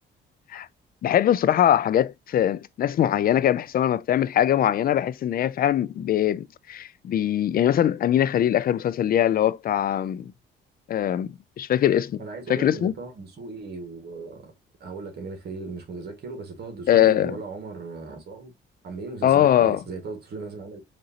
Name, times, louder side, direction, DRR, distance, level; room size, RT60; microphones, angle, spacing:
voice 1, 1.0-10.3 10.9-11.3 11.6-12.2 12.5-12.9 16.9-17.3 19.2-19.8, left 11 dB, 45° left, 0.4 m, -22 dB
voice 2, 12.2-14.5 14.8-18.5 18.8-20.8, right 3 dB, 55° right, 1.6 m, -37 dB
4.9 x 2.7 x 2.7 m
cardioid pair, 110°, 20 cm